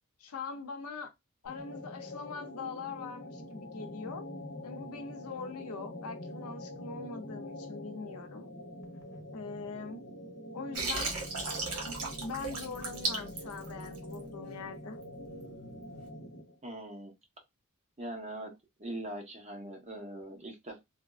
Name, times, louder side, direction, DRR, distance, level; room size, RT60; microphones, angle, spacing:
voice 1, 0.2-1.1 1.4-4.2 4.6-8.5 9.3-10.0 10.5-11.1 11.8-15.0, left 4 dB, 75° left, 0.5 m, -42 dB
sound 1, 1.4-16.6, left 1 dB, 55° left, 1.0 m, -45 dB
Water, 10.7-14.2, right 3 dB, 90° right, 1.3 m, -35 dB
voice 2, 16.6-17.1 18.0-18.5 18.8-20.8, right 1 dB, 30° right, 1.0 m, -41 dB
3.3 x 2.1 x 2.4 m
head